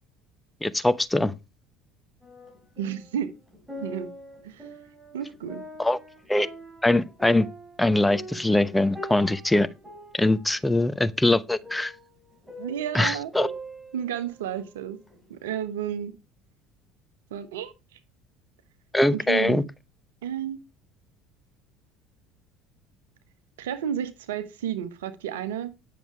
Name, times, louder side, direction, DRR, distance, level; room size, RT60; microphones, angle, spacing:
voice 1, 0.6-1.3 5.8-6.0 6.3-6.5 6.8-7.5 7.8-9.7 10.1-11.9 12.9-13.5 18.9-19.6, left 2 dB, 10° left, 0.8 m, -22 dB
sound 1, 2.2-3.1 3.5-14.6 15.1-15.2, right 2 dB, 10° right, 4.2 m, -42 dB
voice 2, 2.8-3.3 3.8-4.1 4.4-4.7 5.1-5.6 12.6-13.5 13.9-15.0 15.3-16.1 17.3-18.0 19.1-19.6 20.2-20.6 23.6-25.7, right 9 dB, 75° right, 1.2 m, -32 dB
10.0 x 6.9 x 4.7 m
hypercardioid pair, 65°, 0 cm